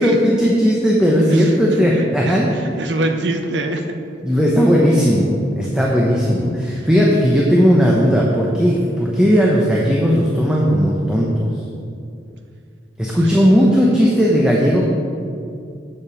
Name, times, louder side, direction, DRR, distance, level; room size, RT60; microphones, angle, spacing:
voice 1, 0.0-2.5 4.2-11.5 13.0-14.9, equal, 5° right, -4 dB, 0.7 m, -16 dB
voice 2, 1.3-3.9 13.2-13.4, right 2 dB, 80° right, 6 dB, 0.7 m, -25 dB
7.3 x 5.0 x 7.1 m, 2.4 s
head